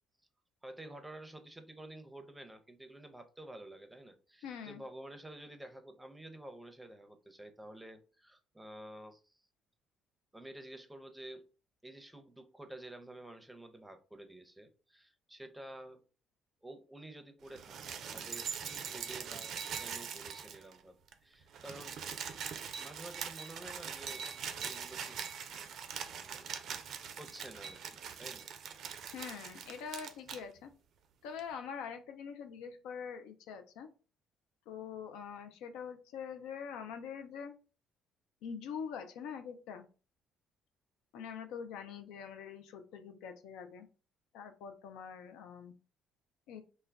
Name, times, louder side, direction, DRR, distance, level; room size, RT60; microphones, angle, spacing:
voice 1, 0.6-9.4 10.3-11.4 11.8-16.0 16.6-22.0 22.8-24.3 24.6-25.4 26.1-26.7 27.2-28.5, right 1 dB, 10° right, 6 dB, 0.6 m, -50 dB
voice 2, 4.4-4.8 29.1-30.7 31.2-33.9 34.7-37.6 38.4-39.9 41.1-43.9 44.3-45.7 46.5-46.6, left 7 dB, 75° left, 7 dB, 0.3 m, -44 dB
sound 1, 17.5-20.8 21.1-21.2 21.4-30.4 31.4-31.5, right 7 dB, 65° right, 0.4 m, -42 dB
2.2 x 2.1 x 3.4 m, 0.35 s
hypercardioid pair, 55°, 0 cm